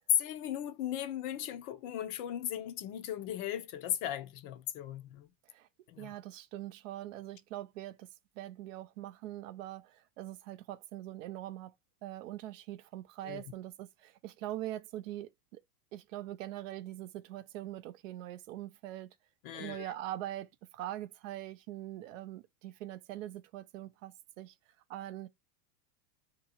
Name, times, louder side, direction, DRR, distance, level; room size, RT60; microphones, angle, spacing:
voice 1, 0.1-5.3 5.9-6.1 13.2-13.4 19.4-19.9, left 11 dB, 40° left, 0.6 m, -36 dB
voice 2, 6.0-8.1 8.4-11.7 12.0-15.6 15.9-19.1 19.5-24.5 24.9-25.3, right 14 dB, 55° right, 0.5 m, -43 dB
2.9 x 2.9 x 4.3 m
supercardioid pair, 130°, 48 cm